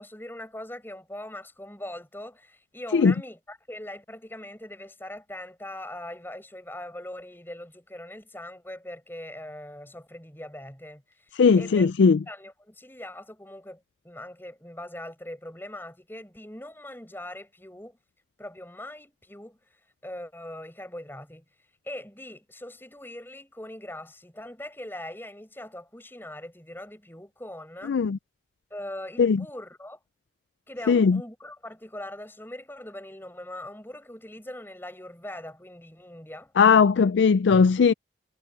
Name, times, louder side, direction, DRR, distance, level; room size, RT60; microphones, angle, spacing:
voice 1, 0.0-11.0 11.6-11.9 12.3-18.0 18.4-19.6 20.0-21.5 21.8-28.0 28.7-30.0 30.7-36.5, left 1 dB, 10° left, 6.1 m, -41 dB
voice 2, 11.3-12.2 27.9-28.2 29.2-29.4 30.9-31.2 36.6-37.9, left 5 dB, 80° left, 0.4 m, -19 dB
head